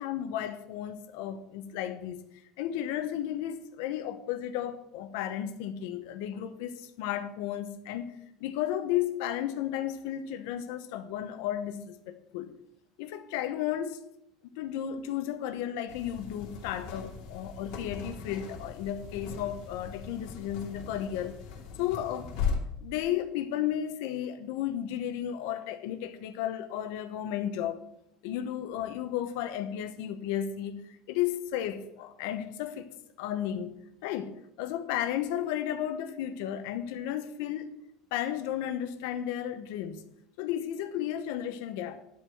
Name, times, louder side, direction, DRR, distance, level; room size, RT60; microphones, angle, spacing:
voice 1, 0.0-2.2 2.6-8.1 8.4-12.5 13.0-14.0 14.4-21.3 21.8-22.4 22.8-27.8 28.2-32.9 33.2-33.8 34.0-37.7 38.1-40.0 40.4-42.0, left 11 dB, 80° left, 0.9 m, -33 dB
sound 1, 15.9-22.6, left 6 dB, 60° left, 2.8 m, -38 dB
11.5 x 4.7 x 7.8 m
cardioid pair, 160°, 0 cm